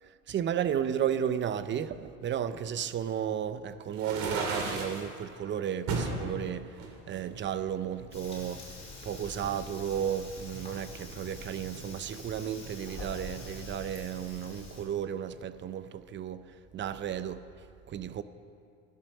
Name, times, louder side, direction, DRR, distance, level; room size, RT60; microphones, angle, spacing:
voice 1, 0.0-8.7 9.0-18.2, right 9 dB, 40° right, 0.7 m, -34 dB
sound 1, 3.9-5.0 5.9-6.2 6.8-7.9, right 4 dB, 75° right, 2.8 m, -33 dB
Fire, 8.1-14.8, left 1 dB, 20° left, 4.8 m, -45 dB
16.0 x 12.0 x 6.6 m
cardioid pair, 120°, 29 cm